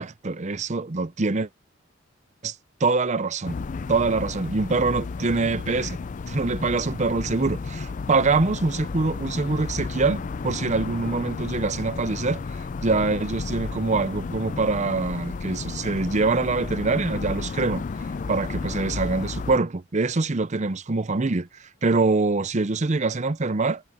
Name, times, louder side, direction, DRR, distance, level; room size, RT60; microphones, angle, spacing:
voice 1, 0.0-1.5 2.4-2.5 2.8-3.6 3.9-6.0 6.3-12.4 12.8-17.8 18.3-21.5 21.8-23.8, right 3 dB, 35° right, 0.7 m, -24 dB
sound 1, 3.4-19.6, left 4 dB, 40° left, 0.4 m, -33 dB
head